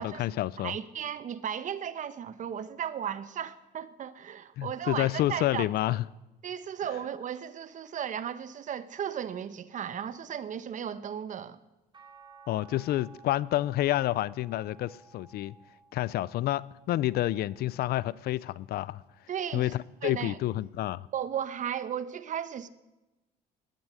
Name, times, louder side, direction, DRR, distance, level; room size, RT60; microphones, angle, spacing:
voice 1, 0.0-0.8 4.6-6.0 12.5-15.5 15.9-19.0 19.5-21.1, left 14 dB, 65° left, 0.5 m, -29 dB
voice 2, 0.6-6.0 6.4-11.6 19.3-19.7 20.0-20.4 21.1-22.7, right 9 dB, 50° right, 1.0 m, -35 dB
sound 1, 11.9-18.2 18.8-20.2 21.6-21.7, right 4 dB, 25° right, 3.3 m, -57 dB
19.0 x 11.0 x 6.4 m
cardioid pair, 110°, 17 cm